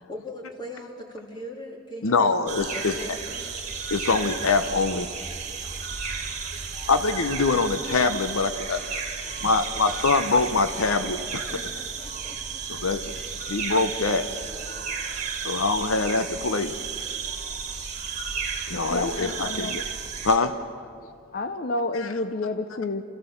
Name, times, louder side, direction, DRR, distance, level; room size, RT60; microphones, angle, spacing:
voice 1, 0.1-2.4 2.7-3.5 5.7-5.8 6.6-6.8 9.2-10.0 11.5-12.6 14.2-15.1, equal, 20° left, 0 dB, 2.8 m, -41 dB
voice 2, 2.0-2.9 3.9-5.1 6.9-8.8 9.4-11.5 12.7-13.0 13.5-14.3 15.4-16.7 18.7-19.9 20.2-20.5 21.9-22.1, left 4 dB, 80° left, 10 dB, 0.8 m, -24 dB
sound 1, 2.5-20.4, right 5 dB, 35° right, 2.1 m, -33 dB
voice 3, 18.9-19.8 21.3-23.0, left 2 dB, 45° left, 8 dB, 0.7 m, -29 dB
28.0 x 15.0 x 7.1 m, 2.3 s
head